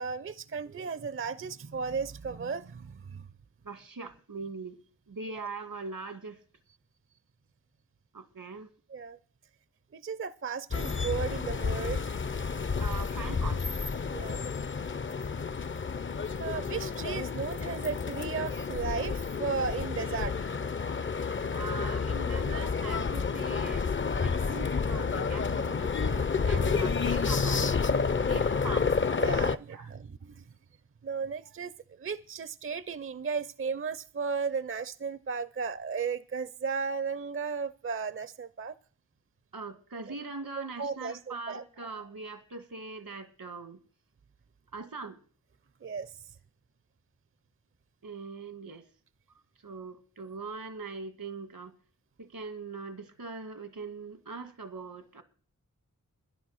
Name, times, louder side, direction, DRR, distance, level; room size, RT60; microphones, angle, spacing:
voice 1, 0.0-3.3 5.3-5.5 8.9-9.2 9.9-12.1 14.1-14.5 16.4-20.6 21.3-21.8 29.2-30.4 31.0-38.8 40.8-41.6 45.8-46.1, right 5 dB, 40° right, 0.5 m, -35 dB
voice 2, 3.6-4.8 5.1-6.4 8.1-8.7 12.8-13.6 21.5-23.9 24.2-27.8 28.3-28.9 29.7-29.9 39.5-43.8 44.7-45.2 48.0-48.8 49.6-51.7 52.2-55.2, right 4 dB, 85° right, 1.7 m, -41 dB
sound 1, 10.7-29.6, left 5 dB, 35° left, 0.5 m, -30 dB
12.0 x 11.0 x 6.3 m
wide cardioid pair, 70°, 33 cm